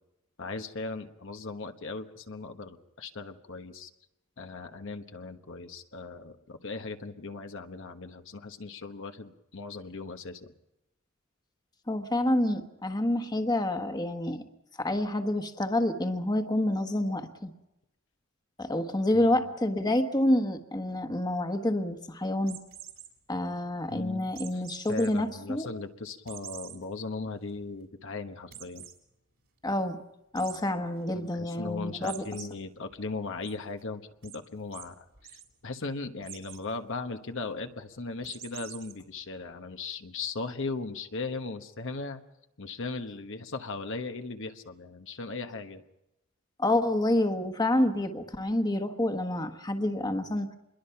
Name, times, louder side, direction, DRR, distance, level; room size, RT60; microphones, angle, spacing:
voice 1, 0.4-3.9 4.4-10.4 19.1-19.5 23.9-24.6 24.9-28.9 31.1-42.2 42.6-45.8, left 3 dB, 65° left, 6 dB, 1.2 m, -38 dB
voice 2, 11.9-14.4 14.8-17.5 18.6-22.6 23.3-25.7 29.6-30.0 30.3-32.2 46.6-50.5, left 1 dB, 20° left, 6 dB, 1.4 m, -28 dB
sound 1, 22.4-23.1 24.3-25.1 25.5-25.6 26.3-26.8 27.2-27.3 27.6-27.7 28.5-28.9 30.3-30.6 32.0-32.5 32.9-33.5 34.2-34.4 34.7-34.8 35.1-35.4 36.2-36.6 38.2-38.9, right 12 dB, 70° right, 3.8 m, -45 dB
26.5 x 22.0 x 5.8 m, 0.89 s
head